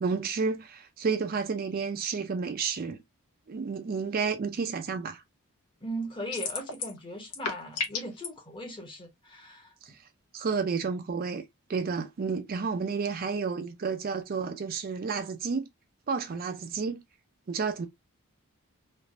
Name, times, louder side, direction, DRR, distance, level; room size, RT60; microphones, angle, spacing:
voice 1, 0.0-3.0 3.5-5.2 9.8-9.9 10.3-11.4 11.7-15.7 16.1-17.0 17.5-17.9, right 5 dB, 40° right, 0.4 m, -31 dB
voice 2, 5.8-9.7, right 1 dB, 20° left, 0.9 m, -38 dB
sound 1, 6.3-7.0 7.3-8.3, left 5 dB, 90° left, 0.9 m, -32 dB
3.2 x 2.5 x 2.4 m
head